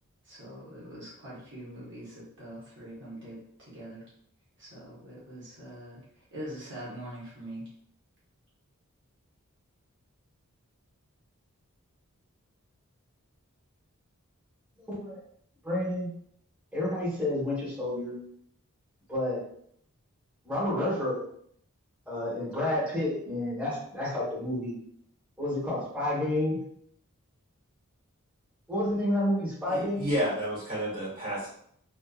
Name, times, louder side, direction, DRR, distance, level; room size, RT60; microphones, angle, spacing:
voice 1, 0.2-4.0 4.6-7.6, right 1 dB, 55° right, -8 dB, 1.0 m, -43 dB
voice 2, 15.6-16.2 16.7-18.1 19.1-19.4 20.4-21.2 22.1-24.8 25.4-26.6 28.7-30.0, left 1 dB, 5° right, -11 dB, 1.0 m, -30 dB
voice 3, 29.7-31.5, equal, 40° right, -7 dB, 1.3 m, -31 dB
2.5 x 2.4 x 2.3 m, 0.66 s
head